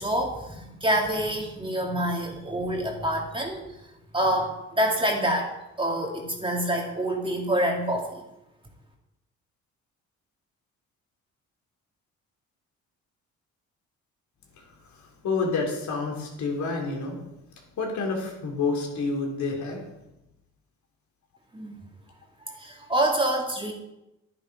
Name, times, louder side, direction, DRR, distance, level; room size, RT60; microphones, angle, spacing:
voice 1, 0.0-3.6 4.1-5.5 5.8-8.2 21.5-21.8 22.5-23.7, right 1 dB, 15° right, 0 dB, 2.4 m, -26 dB
voice 2, 15.2-17.1 17.8-19.8, left 4 dB, 70° left, 1 dB, 3.3 m, -28 dB
10.5 x 10.0 x 4.9 m, 0.90 s
cardioid pair, 90°, 30 cm